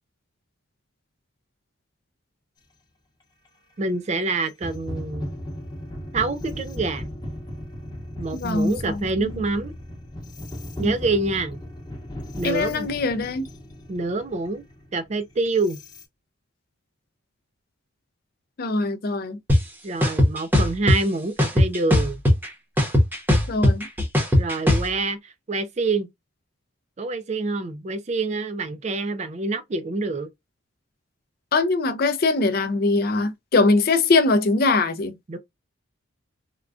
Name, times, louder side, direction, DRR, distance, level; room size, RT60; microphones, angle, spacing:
sound 1, 3.5-3.6 4.5-16.0, left 1 dB, 20° left, 0.9 m, -37 dB
voice 1, 3.8-5.3 6.1-7.1 8.2-9.7 10.8-11.6 12.4-12.9 13.9-14.6 14.9-15.8 19.8-22.2 24.3-26.1 27.0-30.3 35.3-35.4, right 3 dB, 30° right, 0.4 m, -26 dB
voice 2, 8.3-9.3 10.8-10.9 12.4-13.5 18.6-19.4 23.5-23.9 31.5-35.1, left 3 dB, 45° left, 0.4 m, -22 dB
sound 2, 19.5-19.6 20.0-21.0 21.4-22.5 22.8-24.9, left 1 dB, 10° right, 0.8 m, -17 dB
3.6 x 2.2 x 2.3 m
head